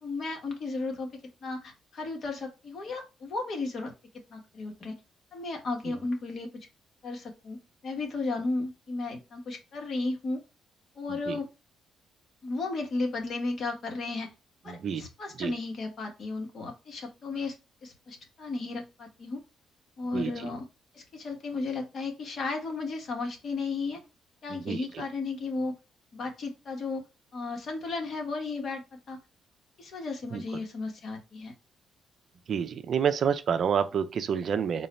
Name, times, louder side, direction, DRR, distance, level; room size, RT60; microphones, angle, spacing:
voice 1, 0.0-3.9 4.3-5.0 5.3-6.7 7.0-10.4 11.0-11.5 12.4-14.3 14.6-17.6 17.8-19.4 20.0-20.7 20.9-24.0 24.4-25.7 26.1-27.0 27.3-29.2 29.8-31.5, left 3 dB, 55° left, 1.2 m, -34 dB
voice 2, 14.7-15.0 15.4-15.5 20.1-20.3 24.5-24.8 30.3-30.4 32.5-34.9, right 7 dB, 55° right, 0.4 m, -28 dB
3.8 x 2.1 x 4.0 m
cardioid pair, 90°, 0 cm